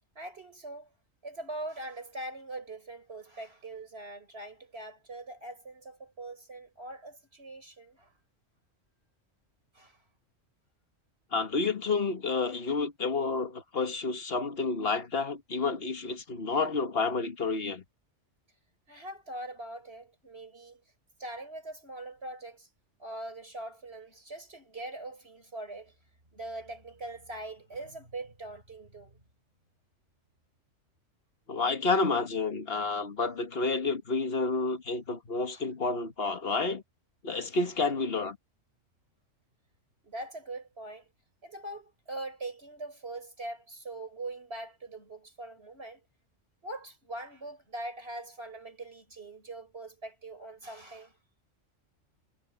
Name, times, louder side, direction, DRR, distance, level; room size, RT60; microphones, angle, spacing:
voice 1, 0.2-0.9 1.2-8.1 9.7-10.0 12.5-12.6 18.9-20.8 21.2-22.7 23.0-26.0 26.3-29.2 32.9-33.0 35.5-35.6 37.5-37.6 40.0-41.1 41.4-46.0 46.6-51.2, right 2 dB, 55° right, 5.5 m, -42 dB
voice 2, 11.3-17.8 31.5-36.8 37.2-38.4, left 4 dB, 50° left, 1.8 m, -30 dB
omnidirectional pair, 1.2 m